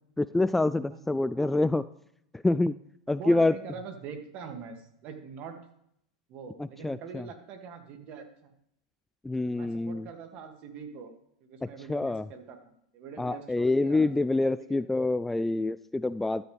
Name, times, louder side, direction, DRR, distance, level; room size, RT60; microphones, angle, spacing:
voice 1, 0.2-1.8 2.4-2.7 3.1-3.5 6.6-7.3 9.2-10.1 11.9-12.3 13.2-16.4, left 2 dB, 5° left, 15 dB, 0.3 m, -26 dB
voice 2, 3.1-5.6 6.3-8.5 9.5-11.1 11.4-12.6 12.9-14.8, right 6 dB, 50° right, 5 dB, 2.3 m, -44 dB
14.0 x 12.5 x 3.5 m, 0.74 s
hypercardioid pair, 105°, 3 cm